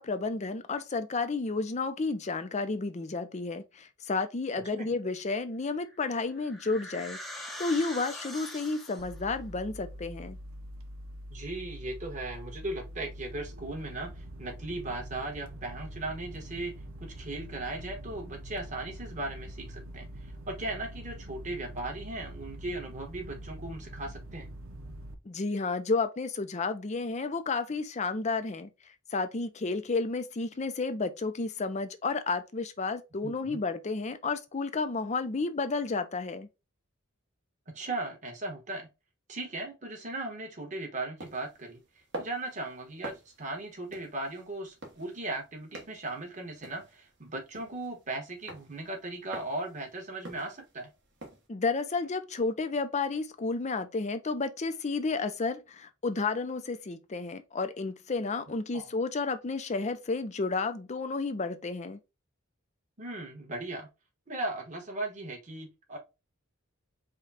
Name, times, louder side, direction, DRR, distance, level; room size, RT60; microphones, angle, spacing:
voice 1, 0.0-10.4 25.3-28.7 29.1-36.5 51.5-62.0, left 3 dB, 35° left, 0.5 m, -31 dB
sound 1, 5.8-9.2, left 1 dB, ahead, 0.7 m, -43 dB
sound 2, 9.0-25.1, right 1 dB, 90° right, 0.8 m, -44 dB
voice 2, 11.3-16.7 17.0-24.5 33.2-33.6 37.7-38.9 39.3-41.8 42.2-50.9 58.7-58.9 63.0-63.9 64.3-66.0, right 2 dB, 35° right, 1.4 m, -37 dB
sound 3, 41.2-51.5, right 1 dB, 60° right, 1.3 m, -47 dB
5.0 x 2.3 x 4.1 m
head